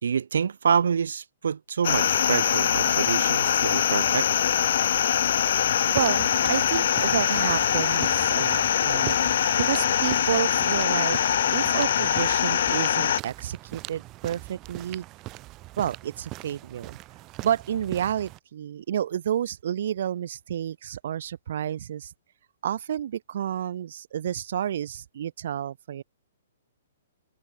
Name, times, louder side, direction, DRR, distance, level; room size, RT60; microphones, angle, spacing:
voice 1, 0.0-4.3, right 7 dB, 80° right, 2.1 m, -27 dB
sound 1, 1.8-13.2, left 9 dB, 65° left, 1.0 m, -23 dB
sound 2, 5.9-18.4, right 19 dB, 30° right, 5.4 m, -41 dB
voice 2, 5.9-9.2 9.6-11.2 11.5-15.0 15.8-17.0 17.4-22.1 22.6-26.0, right 10 dB, 65° right, 2.2 m, -30 dB
hypercardioid pair, 140°, 0 cm